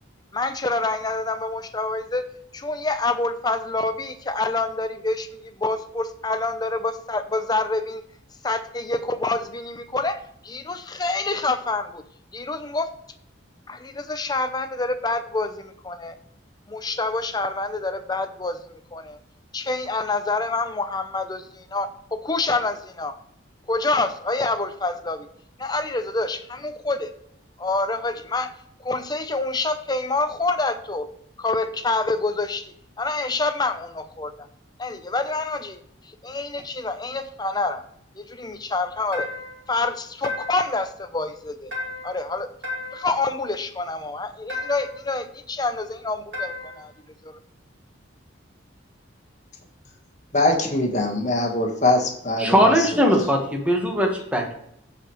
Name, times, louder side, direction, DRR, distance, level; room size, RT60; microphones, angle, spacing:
voice 1, 0.3-2.2 2.5-8.0 8.4-12.0 12.3-12.9 13.7-16.2 16.7-19.2 19.5-23.2 23.7-25.3 25.6-27.1 27.6-28.5 28.8-31.1 31.4-34.5 34.8-37.8 38.2-39.3 39.7-41.7 42.0-42.5 42.9-46.9 47.2-47.4, left 3 dB, 20° left, 9 dB, 0.6 m, -27 dB
sound 1, 39.1-39.7 40.2-40.8 41.7-42.3 42.6-43.2 44.5-45.0 46.3-46.9, left 2 dB, 65° right, 2.5 m, -33 dB
voice 2, 50.3-52.9, left 2 dB, 35° left, 2 dB, 1.5 m, -22 dB
voice 3, 52.4-54.5, equal, 5° right, 1 dB, 1.4 m, -20 dB
13.5 x 5.0 x 3.1 m, 0.70 s
head